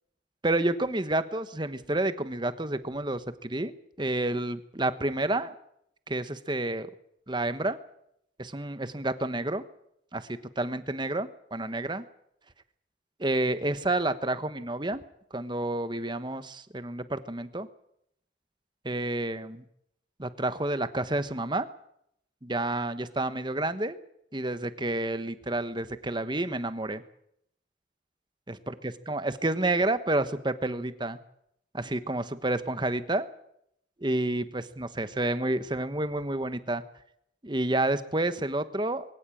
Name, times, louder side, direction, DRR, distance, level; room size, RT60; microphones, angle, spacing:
voice 1, 0.4-3.7 4.0-5.5 6.1-6.9 7.3-7.8 8.4-9.6 10.1-12.0 13.2-15.0 15.3-17.7 18.8-19.6 20.2-21.7 22.4-24.0 24.3-27.0 28.7-31.2 31.7-33.3 34.0-36.8 37.4-39.0, right 2 dB, 25° right, 11 dB, 1.2 m, -29 dB
22.5 x 17.0 x 8.6 m, 0.75 s
head